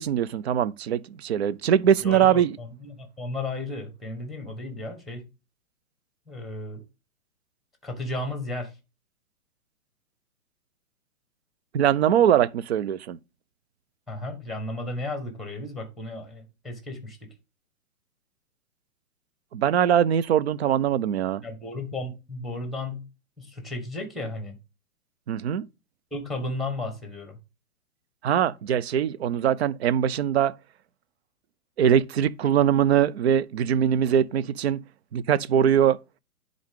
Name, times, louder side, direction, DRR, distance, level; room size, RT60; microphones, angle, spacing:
voice 1, 0.0-2.6 11.7-13.2 19.5-21.4 25.3-25.6 28.2-30.5 31.8-34.8 35.1-36.0, right 9 dB, 45° right, 0.5 m, -22 dB
voice 2, 2.0-5.3 6.3-6.8 7.8-8.7 14.1-17.3 21.4-23.1 23.4-24.6 26.1-27.4, left 2 dB, ahead, 1.3 m, -34 dB
10.5 x 3.9 x 3.6 m
hypercardioid pair, 135°, 45 cm